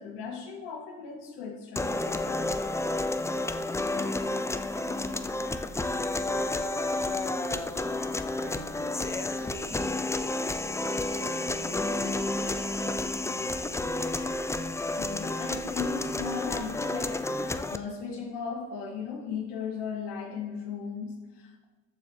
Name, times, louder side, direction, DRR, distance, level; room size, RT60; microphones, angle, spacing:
voice 1, 0.0-2.5 15.0-21.6, left 5 dB, 75° left, 2 dB, 2.0 m, -37 dB
sound 1, 1.8-17.8, left 2 dB, 10° left, 0.3 m, -30 dB
voice 2, 3.9-5.3 6.0-7.8 8.4-10.0 11.0-13.8 14.5-14.8, right 6 dB, 85° right, 5 dB, 1.5 m, -48 dB
14.0 x 4.7 x 4.7 m, 1.3 s
supercardioid pair, 90°, 41 cm